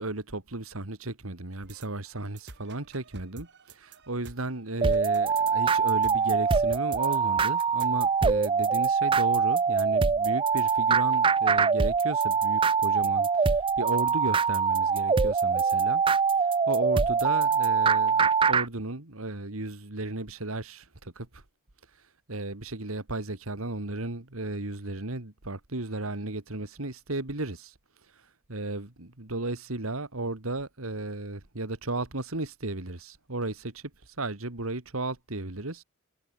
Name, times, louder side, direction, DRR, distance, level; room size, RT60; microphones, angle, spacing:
voice 1, 0.0-16.0 16.7-21.4 22.3-27.7 28.5-35.8, right 2 dB, 75° right, 2.5 m, -34 dB
sound 1, 1.6-8.0, right 2 dB, 55° right, 4.1 m, -50 dB
sound 2, 4.8-18.7, right 5 dB, 25° right, 0.4 m, -24 dB
head